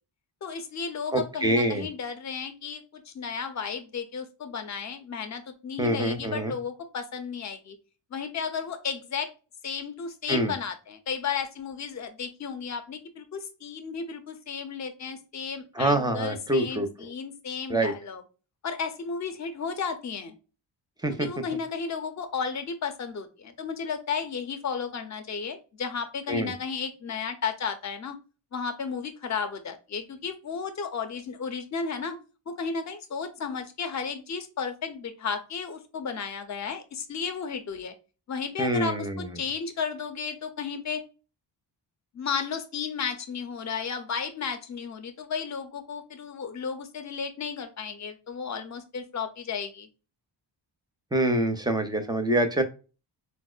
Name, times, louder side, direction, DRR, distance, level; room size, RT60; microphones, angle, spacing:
voice 1, 0.4-7.8 8.1-9.3 9.6-18.2 18.6-20.3 21.2-28.2 28.5-32.2 32.5-37.9 38.3-41.0 42.1-49.9, left 6 dB, 35° left, 7 dB, 0.6 m, -33 dB
voice 2, 1.1-1.9 5.8-6.5 10.3-10.5 15.7-17.1 17.7-17.9 21.0-21.3 26.3-26.5 38.6-39.3 51.1-52.6, right 1 dB, 10° right, 7 dB, 0.4 m, -25 dB
4.3 x 2.0 x 2.3 m, 0.33 s
wide cardioid pair, 100°, 46 cm